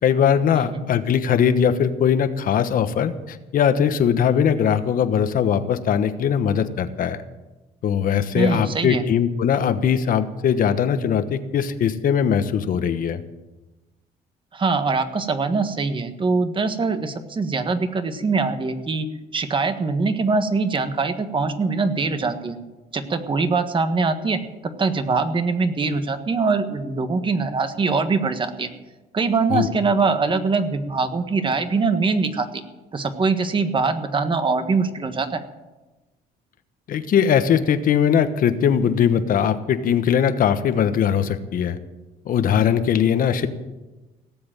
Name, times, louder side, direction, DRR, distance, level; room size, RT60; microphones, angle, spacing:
voice 1, 0.0-7.2 7.8-13.2 29.5-29.7 36.9-41.8 42.2-43.5, left 8 dB, 55° left, 10 dB, 1.2 m, -20 dB
voice 2, 8.3-9.0 14.5-19.1 19.3-22.6 22.9-28.7 29.1-32.6 32.9-35.4, right 4 dB, 30° right, 9 dB, 1.5 m, -23 dB
17.5 x 7.8 x 9.0 m, 1.1 s
cardioid pair, 110°, 17 cm